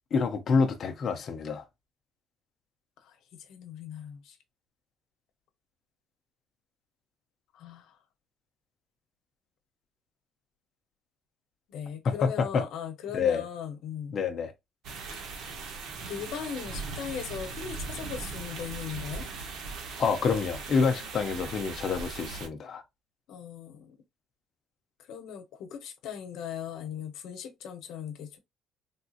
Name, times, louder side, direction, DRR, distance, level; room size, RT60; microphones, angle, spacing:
voice 1, 0.1-1.6 12.0-12.6 13.1-13.4 14.1-14.5 20.0-22.8, left 5 dB, 35° left, 0.6 m, -27 dB
voice 2, 3.5-4.4 7.5-7.9 11.7-14.2 15.4-15.5 16.1-19.2 23.3-23.9 25.1-28.4, left 8 dB, 60° left, 0.8 m, -39 dB
sound 1, 14.8-22.5, right 4 dB, 60° right, 0.8 m, -39 dB
3.5 x 2.7 x 2.4 m
cardioid pair, 170°, 0 cm